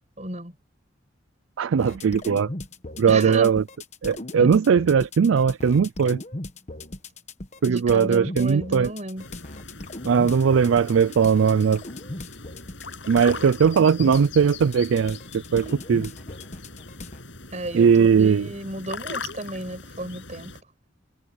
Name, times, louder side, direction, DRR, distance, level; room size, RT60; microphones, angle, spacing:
voice 1, 0.2-0.5 3.1-3.5 4.4-4.5 7.6-9.3 17.5-20.5, right 1 dB, 35° right, 6.4 m, -33 dB
voice 2, 1.6-2.5 3.0-3.6 4.0-6.2 7.6-8.9 10.0-11.8 13.1-15.2 15.5-16.1 17.7-18.5, right 6 dB, 75° right, 0.4 m, -19 dB
sound 1, 1.8-17.2, left 2 dB, 35° left, 1.2 m, -38 dB
sound 2, 9.2-20.6, left 3 dB, 65° left, 7.3 m, -40 dB
head